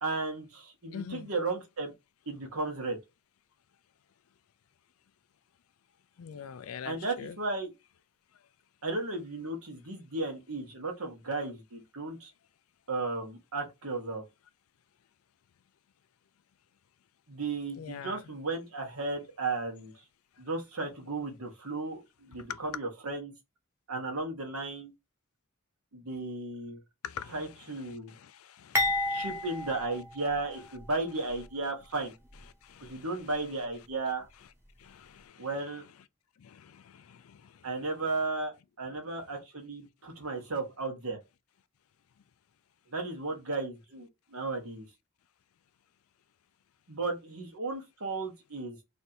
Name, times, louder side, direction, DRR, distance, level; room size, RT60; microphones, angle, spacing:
voice 1, 0.0-1.9 2.3-3.0 6.8-7.7 8.8-12.3 12.9-14.2 17.3-19.9 20.4-23.3 23.9-24.9 25.9-26.8 27.3-28.1 29.1-32.1 32.8-34.2 35.4-35.8 37.6-41.2 42.9-44.9 46.9-48.7, right 3 dB, 85° right, 1.3 m, -35 dB
voice 2, 0.9-1.3 6.2-7.4 17.8-18.2 22.5-22.6 27.0-29.3 32.6-33.3 34.8-35.5 36.4-37.7 38.9-39.0, left 7 dB, 75° left, 0.4 m, -44 dB
sound 1, 28.7-30.9 31.3-31.4 32.3-32.4, left 2 dB, 10° right, 0.9 m, -32 dB
3.2 x 2.6 x 4.2 m
head